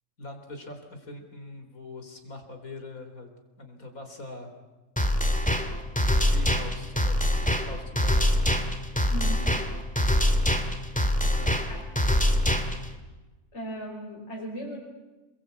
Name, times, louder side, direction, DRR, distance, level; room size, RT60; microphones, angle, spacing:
voice 1, 0.2-3.3 3.6-4.5 6.3-8.3 11.2-11.6, left 2 dB, 90° left, 5 dB, 4.4 m, -42 dB
sound 1, 5.0-12.9, left 1 dB, 5° left, 2.1 m, -24 dB
voice 2, 9.1-9.5 11.7-11.9 13.5-14.8, equal, 55° left, -3 dB, 5.4 m, -37 dB
28.5 x 21.5 x 8.5 m, 1.2 s
omnidirectional pair, 1.4 m